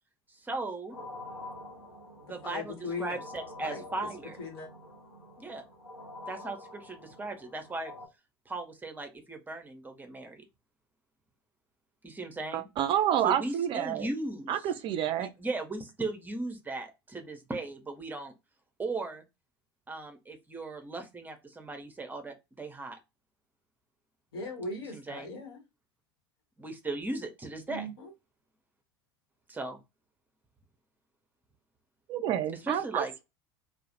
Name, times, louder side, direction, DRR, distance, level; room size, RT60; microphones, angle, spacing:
voice 1, 0.4-1.0 2.2-4.4 5.4-5.6 6.2-7.9 8.5-10.4 12.0-12.7 13.2-14.7 15.2-18.3 18.8-19.2 19.9-23.0 24.9-25.3 26.6-27.9 29.5-29.8 32.6-33.2, right 2 dB, 15° right, 0.7 m, -37 dB
sound 1, 0.9-8.1, left 2 dB, 90° left, 0.6 m, -47 dB
voice 2, 2.4-3.2 3.6-4.1 4.4-4.7 24.3-25.6 27.7-28.1, left 2 dB, 70° left, 1.0 m, -39 dB
voice 3, 12.5-14.1 14.5-15.3 32.1-33.2, right 10 dB, 40° right, 0.4 m, -29 dB
2.3 x 2.1 x 2.9 m
figure-of-eight pair, 70°, 13 cm